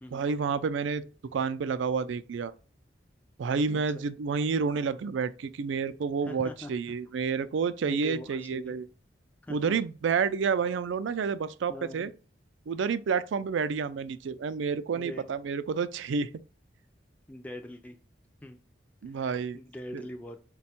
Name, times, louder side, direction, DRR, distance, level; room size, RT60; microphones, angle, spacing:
voice 1, 0.1-1.0 1.3-2.5 3.4-8.9 9.5-12.1 12.7-16.3 19.0-19.6 19.9-20.0, right 5 dB, 80° right, 0.4 m, -29 dB
voice 2, 3.7-4.1 6.2-6.7 7.9-8.7 9.4-9.8 11.7-12.1 14.9-15.3 17.3-18.0 18.4-18.6 19.1-20.4, left 1 dB, 10° left, 0.3 m, -42 dB
5.1 x 2.3 x 4.2 m
head